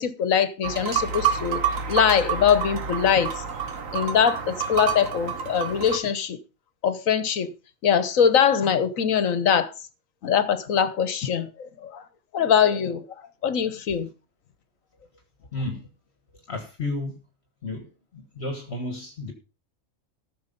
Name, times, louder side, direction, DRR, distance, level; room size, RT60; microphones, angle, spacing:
voice 1, 0.0-1.6 1.9-3.4 3.9-6.4 6.8-7.5 7.8-9.7 10.2-12.1 12.3-13.0 13.4-14.1, left 8 dB, 75° left, 1.4 m, -22 dB
sound 1, 0.6-6.0, right 7 dB, 70° right, 1.7 m, -28 dB
voice 2, 15.5-15.9 16.5-17.2 17.6-19.3, left 2 dB, 50° left, 1.7 m, -32 dB
14.0 x 6.6 x 5.3 m
omnidirectional pair, 1.4 m